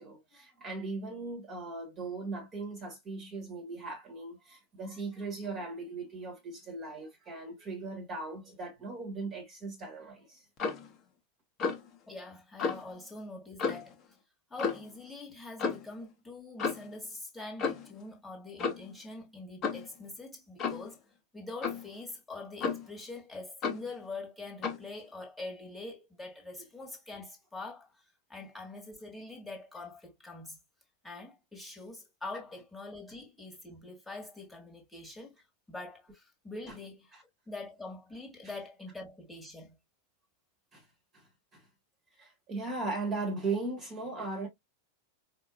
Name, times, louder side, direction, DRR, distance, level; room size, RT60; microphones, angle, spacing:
voice 1, 0.0-10.4 37.1-37.2 40.7-40.8 41.1-41.6 42.2-44.5, right 3 dB, 30° right, 1.4 m, -38 dB
Clock, 10.6-10.9 11.6-11.9 12.6-12.8 13.6-13.9 14.6-14.9 15.6-15.8 16.6-16.9 17.6-17.9 18.6-18.9 19.6-19.9 20.6-20.9 21.6-21.9 22.6-23.0 23.6-23.9 24.6-24.9, left 5 dB, 30° left, 0.9 m, -33 dB
voice 2, 12.1-13.9 14.5-21.0 21.3-28.0 28.3-30.6 31.0-39.8, left 2 dB, 5° left, 1.5 m, -44 dB
4.6 x 2.4 x 2.4 m
figure-of-eight pair, 90°, 0 cm